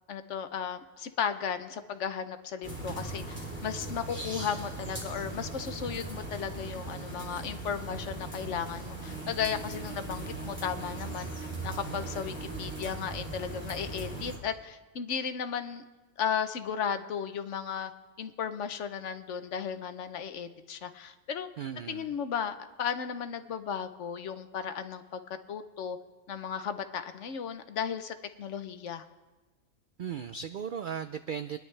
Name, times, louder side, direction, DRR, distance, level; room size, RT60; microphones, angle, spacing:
voice 1, 0.1-11.3 11.6-15.8 16.2-17.9 18.2-21.5 21.9-25.2 25.5-26.0 26.3-29.1, left 7 dB, 65° left, 10 dB, 1.0 m, -35 dB
sound 1, 2.6-14.4, right 2 dB, 10° right, 2.7 m, -39 dB
voice 2, 21.6-22.1 30.0-31.6, right 7 dB, 85° right, 10 dB, 0.4 m, -36 dB
24.5 x 10.5 x 3.2 m, 1.2 s
omnidirectional pair, 1.4 m